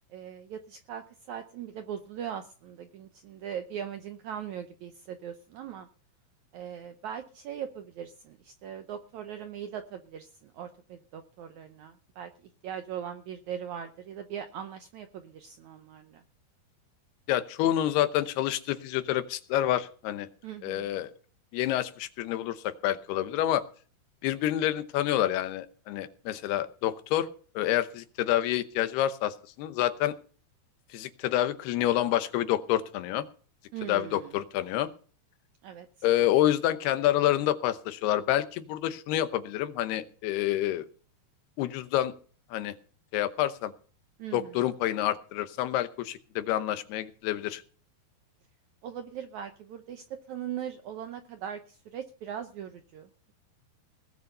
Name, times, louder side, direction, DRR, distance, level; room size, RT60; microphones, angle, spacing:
voice 1, 0.1-5.9 6.5-12.3 12.6-16.2 20.4-20.9 33.7-34.3 35.6-35.9 44.2-44.5 48.8-53.3, right 9 dB, 75° right, 8 dB, 1.7 m, -40 dB
voice 2, 17.3-20.3 20.6-21.1 21.5-23.6 24.2-27.3 27.6-30.1 30.9-33.3 33.9-34.9 36.0-40.9 41.6-42.1 42.5-42.8 43.1-43.7 44.3-47.6, left 12 dB, 90° left, 12 dB, 3.0 m, -28 dB
19.0 x 6.8 x 6.6 m, 0.41 s
omnidirectional pair, 4.5 m